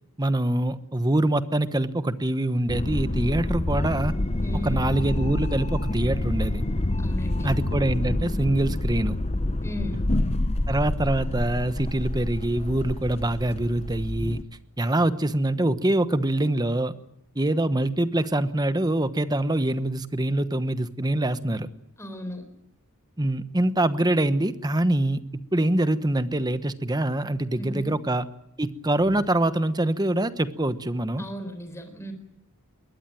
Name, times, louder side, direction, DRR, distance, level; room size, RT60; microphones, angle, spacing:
voice 1, 0.2-4.2 4.5-6.6 7.4-9.2 10.7-14.4 14.8-16.9 17.3-21.7 23.2-28.3 28.6-31.2, right 1 dB, 20° right, 12 dB, 1.1 m, -24 dB
sound 1, 2.7-14.4, left 1 dB, 30° left, 0.8 m, -27 dB
voice 2, 4.4-4.9 7.0-7.5 9.6-10.1 22.0-22.4 27.6-27.9 31.2-32.1, equal, 10° left, 7 dB, 4.3 m, -36 dB
22.0 x 19.5 x 9.1 m, 0.78 s
head